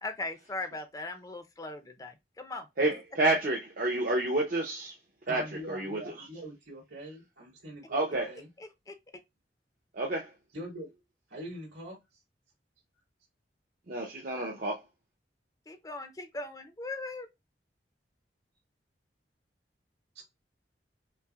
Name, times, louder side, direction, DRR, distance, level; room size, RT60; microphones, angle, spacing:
voice 1, 0.0-2.7 8.6-9.0 15.7-17.3, left 2 dB, 20° left, 0.5 m, -39 dB
voice 2, 2.8-5.0 5.3-6.1 7.9-8.3 9.9-10.3 13.9-14.8, right 2 dB, 50° right, 0.7 m, -29 dB
voice 3, 5.3-8.5 10.5-10.9 11.3-12.0 20.1-20.2, equal, 80° right, 2.5 m, -43 dB
5.6 x 2.0 x 2.3 m
head